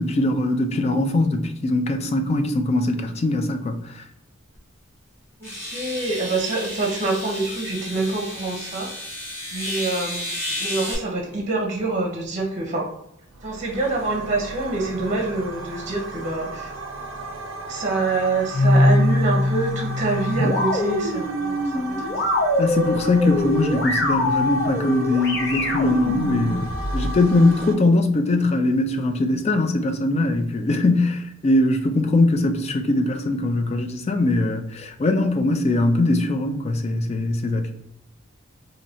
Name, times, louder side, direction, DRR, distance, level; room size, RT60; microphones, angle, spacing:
voice 1, 0.0-4.0 22.6-37.7, left 2 dB, 30° left, 0.3 m, -21 dB
sound 1, 4.6-4.7 5.4-11.0, left 1 dB, 10° left, 0.9 m, -32 dB
voice 2, 5.4-8.9 9.5-10.3 10.6-12.9 13.4-16.7 17.7-22.2, right 3 dB, 35° right, 0.7 m, -26 dB
sound 2, 13.3-27.8, right 1 dB, 70° right, 0.5 m, -35 dB
sound 3, 18.5-27.1, left 1 dB, 60° left, 0.7 m, -23 dB
3.1 x 2.7 x 2.7 m
head